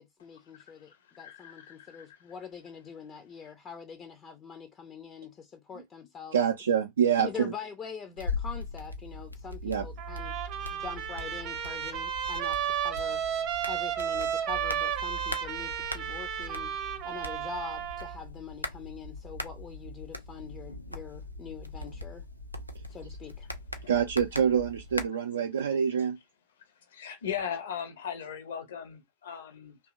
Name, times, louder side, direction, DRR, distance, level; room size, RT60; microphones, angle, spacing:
voice 1, 0.0-6.4 7.2-10.4 10.7-13.2 13.7-16.7 17.0-22.3 22.9-23.5, left 6 dB, 25° left, 0.4 m, -44 dB
voice 2, 0.5-2.1 23.8-23.9 26.9-29.8, left 8 dB, 60° left, 0.7 m, -38 dB
voice 3, 6.3-7.5 9.6-9.9 23.9-26.2, right 7 dB, 65° right, 0.3 m, -26 dB
sound 1, 8.2-25.1, left 2 dB, 90° left, 0.4 m, -40 dB
Trumpet, 10.0-18.2, right 9 dB, 40° right, 0.7 m, -33 dB
2.8 x 2.3 x 2.4 m
figure-of-eight pair, 90°, 0 cm